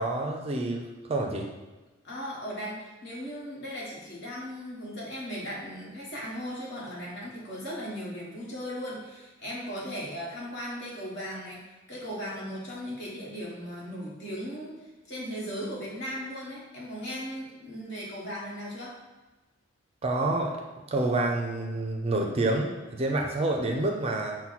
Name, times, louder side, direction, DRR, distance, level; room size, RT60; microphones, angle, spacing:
voice 1, 0.0-1.5 20.0-20.6 20.9-24.4, right 2 dB, 30° right, 2 dB, 0.4 m, -28 dB
voice 2, 2.0-18.9, equal, 55° left, -5 dB, 1.4 m, -37 dB
5.7 x 2.2 x 4.0 m, 1.2 s
head